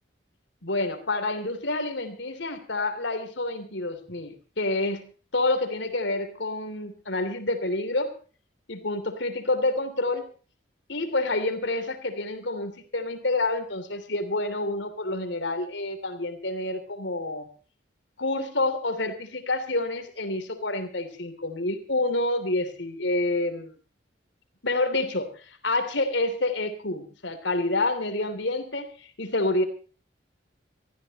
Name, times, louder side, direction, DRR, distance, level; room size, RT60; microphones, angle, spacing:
voice 1, 0.6-8.1 8.7-10.3 10.9-17.5 18.2-23.7 24.6-29.6, left 2 dB, 75° left, 9 dB, 3.1 m, -28 dB
25.0 x 14.5 x 3.0 m, 0.37 s
head